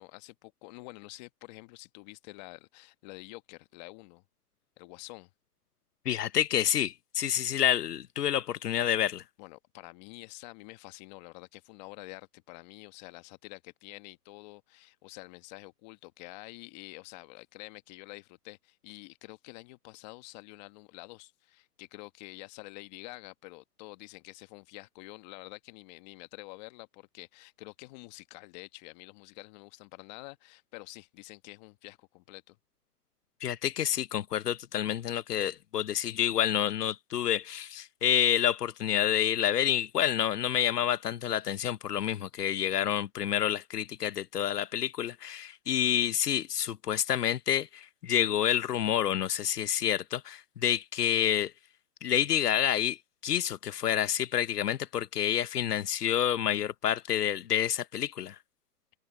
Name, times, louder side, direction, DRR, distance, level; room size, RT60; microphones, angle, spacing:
voice 1, 0.0-4.2 4.8-5.3 9.4-32.6, left 23 dB, 25° left, 1.3 m, -48 dB
voice 2, 6.1-9.2 33.4-51.5 52.0-53.0 53.2-58.3, left 10 dB, 80° left, 1.0 m, -28 dB
hypercardioid pair, 150°, 47 cm